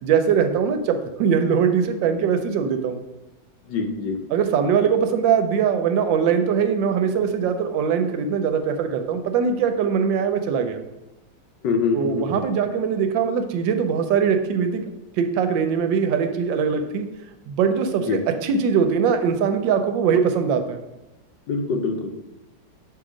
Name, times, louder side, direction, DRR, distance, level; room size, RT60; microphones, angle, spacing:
voice 1, 0.0-3.0 4.3-10.8 11.9-14.9 15.2-17.1 17.5-20.8, right 7 dB, 85° right, 7 dB, 1.3 m, -21 dB
voice 2, 3.7-4.2 11.6-12.4 18.0-18.2 21.5-22.1, left 4 dB, 75° left, 4 dB, 1.4 m, -24 dB
7.1 x 2.8 x 4.9 m, 1.0 s
omnidirectional pair, 2.0 m